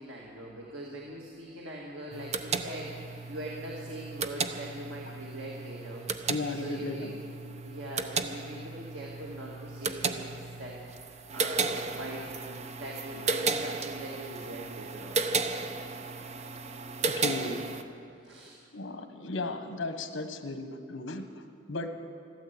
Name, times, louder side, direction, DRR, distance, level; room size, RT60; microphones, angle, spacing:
voice 1, 0.0-6.1 6.5-7.1 7.6-10.8 11.3-15.2 18.2-18.6, right 1 dB, 80° right, -3 dB, 2.0 m, -42 dB
sound 1, 2.1-17.8, right 4 dB, 35° right, 0.7 m, -34 dB
voice 2, 6.3-7.1 17.1-17.6 18.7-21.2 21.7-21.9, left 3 dB, 80° left, 7 dB, 1.2 m, -35 dB
13.5 x 12.5 x 8.0 m, 2.5 s
head